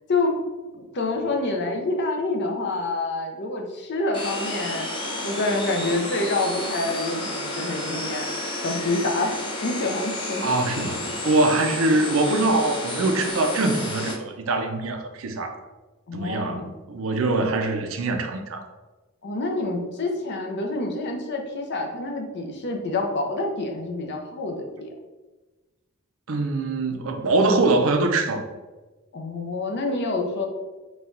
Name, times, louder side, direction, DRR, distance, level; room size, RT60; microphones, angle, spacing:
voice 1, 0.7-4.9 5.2-8.3 8.6-10.5 16.1-16.7 19.2-24.9 29.1-30.5, left 2 dB, 55° left, 3 dB, 0.6 m, -27 dB
sound 1, 4.1-14.1, left 1 dB, 25° left, 0.8 m, -31 dB
voice 2, 10.4-15.6 16.1-18.7 26.3-28.4, right 2 dB, 70° right, 5 dB, 0.5 m, -23 dB
4.2 x 2.3 x 3.8 m, 1.2 s
head